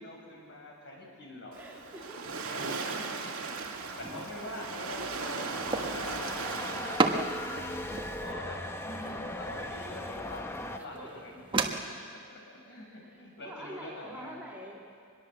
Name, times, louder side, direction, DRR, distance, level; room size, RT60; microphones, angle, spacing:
voice 1, 0.0-1.6 2.3-5.5 5.8-7.8 8.2-11.4 12.3-14.4, left 1 dB, 55° left, -1 dB, 6.5 m, -45 dB
voice 2, 1.5-2.7 9.0-9.2 10.9-11.1 13.0-14.8, equal, 10° right, -4 dB, 3.2 m, -46 dB
Waves surf, 1.5-8.3, right 4 dB, 70° right, 2.2 m, -38 dB
sound 1, 3.1-10.8, left 1 dB, 10° left, 1.0 m, -40 dB
sound 2, 3.5-11.7, right 3 dB, 25° right, 1.4 m, -36 dB
23.5 x 21.5 x 7.7 m, 2.2 s
head